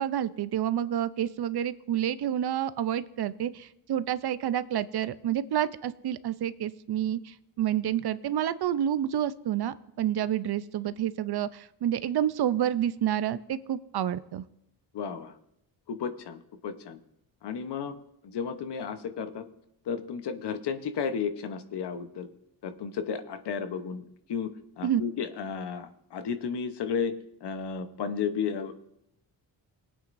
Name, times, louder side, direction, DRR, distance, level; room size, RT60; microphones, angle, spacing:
voice 1, 0.0-14.4 24.8-25.0, right 10 dB, 55° right, 14 dB, 0.6 m, -29 dB
voice 2, 14.9-15.3 15.9-17.0 17.4-18.0 18.2-19.4 19.9-22.3 22.6-27.1 27.4-28.7, left 6 dB, 60° left, 10 dB, 1.0 m, -33 dB
19.0 x 8.8 x 2.6 m, 0.77 s
cardioid pair, 75°, 46 cm